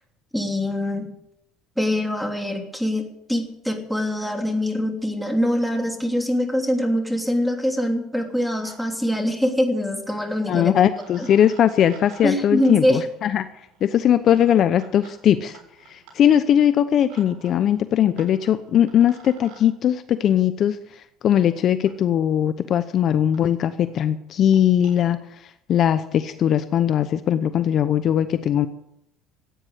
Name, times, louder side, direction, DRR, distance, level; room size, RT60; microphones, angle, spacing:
voice 1, 0.3-1.2 1.8-10.7 11.2-11.3 12.2-13.0, left 1 dB, ahead, 3 dB, 3.0 m, -23 dB
sound 1, 6.6-6.7 6.9-7.4 8.2-8.8 9.0-9.1 10.4-10.5 10.9-19.6 20.9-21.0 21.8-21.9 22.6-22.7 22.9-23.0 23.3-23.4 23.7-23.9 24.3-24.9, right 6 dB, 80° right, 7.2 m, -51 dB
voice 2, 10.5-13.5 13.8-15.6 15.9-28.7, left 10 dB, 50° left, 11 dB, 0.8 m, -20 dB
15.0 x 9.1 x 8.2 m, 0.79 s
supercardioid pair, 115°, 0 cm